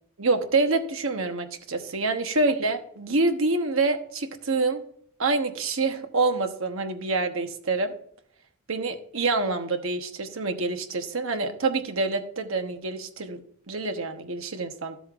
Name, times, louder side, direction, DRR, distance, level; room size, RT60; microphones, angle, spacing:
voice 1, 0.2-4.8 5.2-7.9 8.7-13.4 13.7-15.0, right 3 dB, 65° right, 7 dB, 1.1 m, -26 dB
12.5 x 8.1 x 2.5 m, 0.63 s
head